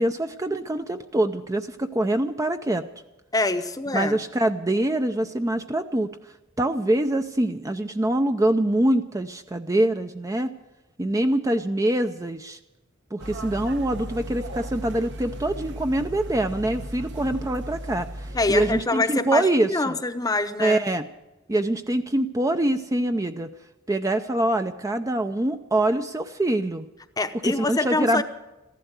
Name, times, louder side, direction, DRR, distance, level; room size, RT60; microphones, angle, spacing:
voice 1, 0.0-2.8 3.9-6.1 6.6-10.5 11.0-12.6 13.1-20.0 20.6-21.0 21.5-23.5 23.9-26.9 27.4-28.2, right 1 dB, 15° right, 8 dB, 0.5 m, -24 dB
voice 2, 3.3-4.2 18.3-20.8 27.2-28.2, left 3 dB, 20° left, 10 dB, 0.8 m, -25 dB
sound 1, 13.2-18.8 19.1-19.2, right 1 dB, 60° right, 1.1 m, -36 dB
14.5 x 11.5 x 8.1 m, 1.0 s
head